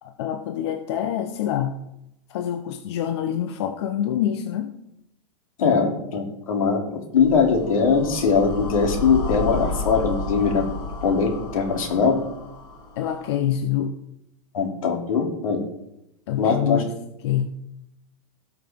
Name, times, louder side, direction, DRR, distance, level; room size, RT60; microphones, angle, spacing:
voice 1, 0.0-1.8 2.3-4.7 13.0-13.9 16.3-16.9 17.2-17.5, left 10 dB, 50° left, 7 dB, 0.7 m, -26 dB
voice 2, 5.6-6.8 7.1-10.6 11.0-12.2 14.5-15.6 16.4-16.8, left 5 dB, 85° left, 2 dB, 2.9 m, -21 dB
sound 1, 7.2-13.4, left 3 dB, 25° left, 4.1 m, -32 dB
17.5 x 6.0 x 3.7 m, 0.83 s
supercardioid pair, 165°, 17 cm